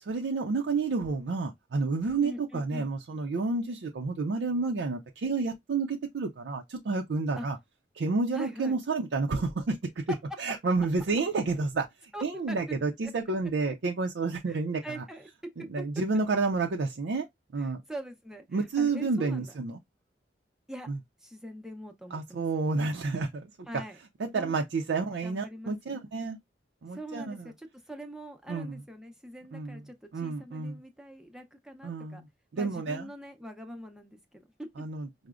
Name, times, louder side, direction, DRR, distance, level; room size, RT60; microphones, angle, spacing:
voice 1, 0.1-7.6 7.9-15.0 15.7-17.3 17.5-17.8 18.5-19.8 20.9-21.0 22.1-23.5 24.2-26.4 26.8-27.4 28.5-28.8 29.5-29.8 30.1-30.8 31.8-32.2 32.5-33.1 34.8-35.1, right 3 dB, 80° right, 0.4 m, -30 dB
voice 2, 2.2-2.9 7.4-7.5 8.3-8.8 12.1-12.7 13.0-13.1 13.6-13.8 14.5-15.8 17.6-19.5 20.7-20.9 21.2-22.4 23.7-24.0 24.3-24.5 25.2-25.9 26.9-32.2 32.5-34.7, equal, 5° right, 0.5 m, -43 dB
4.8 x 2.0 x 2.3 m
head